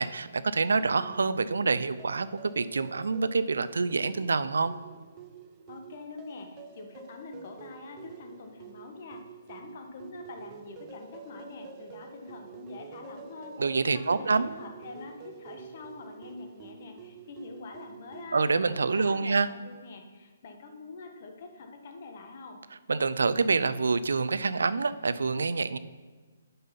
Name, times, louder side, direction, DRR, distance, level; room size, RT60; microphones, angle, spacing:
voice 1, 0.0-4.7 13.6-14.5 18.3-19.5 22.9-25.8, right 4 dB, 80° right, 14 dB, 0.4 m, -26 dB
sound 1, 1.0-18.6, right 7 dB, 25° right, 0.6 m, -48 dB
voice 2, 5.7-9.2 9.5-22.6, left 3 dB, 50° left, 4 dB, 1.4 m, -45 dB
7.5 x 5.5 x 5.8 m, 1.4 s
hypercardioid pair, 145°, 0 cm